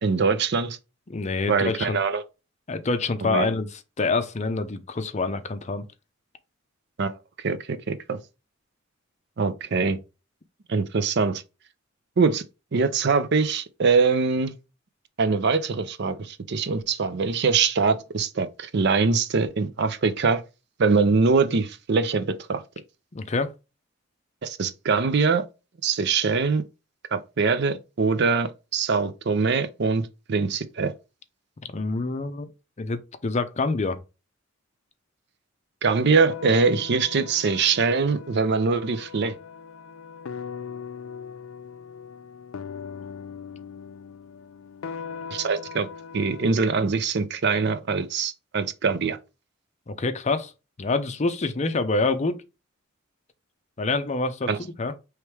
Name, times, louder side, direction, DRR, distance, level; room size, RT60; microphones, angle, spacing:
voice 1, 0.0-0.8 1.5-2.2 3.2-3.5 7.0-8.2 9.4-10.0 10.7-11.4 12.2-12.4 12.7-14.5 15.2-20.4 20.8-22.6 24.4-25.4 25.8-26.6 27.1-30.9 35.8-39.3 45.3-45.9 46.1-49.2 54.5-54.6, right 4 dB, 55° right, 0.5 m, -23 dB
voice 2, 1.1-2.0 2.7-5.9 23.1-23.5 31.7-32.5 32.8-34.0 49.9-50.5 50.8-52.4 53.8-54.9, left 3 dB, 35° left, 0.5 m, -26 dB
sound 1, 36.3-46.5, left 6 dB, 90° left, 0.4 m, -40 dB
4.7 x 3.2 x 3.3 m
head